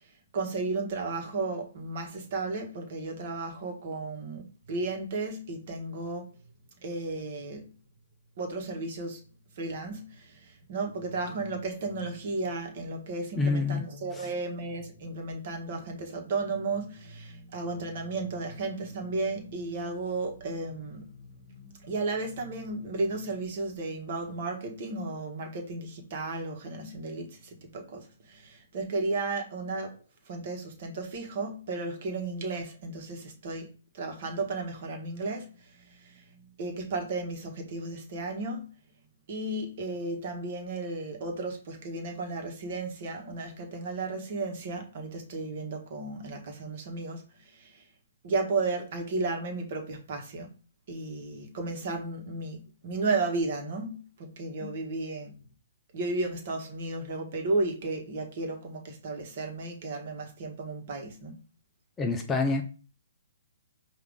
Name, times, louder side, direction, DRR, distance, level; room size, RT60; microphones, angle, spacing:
voice 1, 0.3-6.3 6.8-7.7 8.4-9.2 9.6-29.9 30.3-33.7 33.9-35.5 35.7-38.7 39.3-47.8 48.2-50.5 50.9-55.4 55.9-61.4, right 3 dB, 50° right, 3 dB, 1.3 m, -34 dB
voice 2, 13.4-13.8 14.1-14.3 54.6-54.8 62.0-62.6, left 3 dB, 15° left, 3 dB, 0.6 m, -27 dB
4.9 x 2.7 x 3.5 m, 0.37 s
figure-of-eight pair, 130°, 0 cm